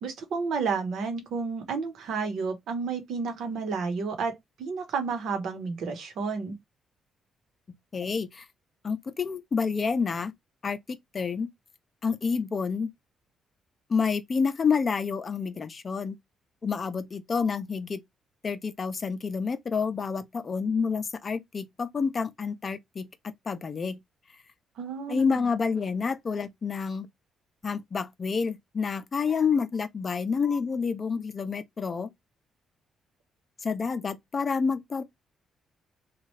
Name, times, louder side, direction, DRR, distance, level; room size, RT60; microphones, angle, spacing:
voice 1, 0.0-6.6 24.8-25.5, right 5 dB, 75° right, 1.0 m, -31 dB
voice 2, 7.9-8.5 8.8-10.3 10.6-10.8 11.1-11.5 12.0-12.9 13.9-16.2 16.6-18.0 18.4-23.1 23.5-24.0 25.1-27.1 27.6-32.1 33.6-35.0, left 5 dB, 40° left, 0.6 m, -28 dB
3.1 x 2.4 x 3.1 m
cardioid pair, 90°, 0 cm